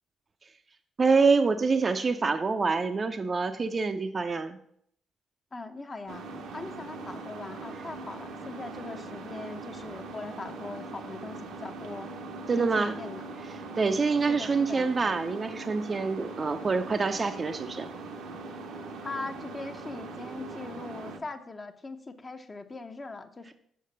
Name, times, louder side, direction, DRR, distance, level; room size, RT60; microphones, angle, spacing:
voice 1, 1.0-4.6 12.5-12.9 13.8-17.9, right 4 dB, 35° right, 8 dB, 0.6 m, -26 dB
voice 2, 5.5-6.2 6.5-12.1 12.6-13.2 14.3-14.9 19.0-23.5, left 3 dB, 30° left, 6 dB, 0.8 m, -40 dB
sound 1, 6.1-21.2, right 3 dB, 85° right, 1.0 m, -41 dB
6.6 x 4.9 x 6.7 m, 0.69 s
cardioid pair, 90°, 0 cm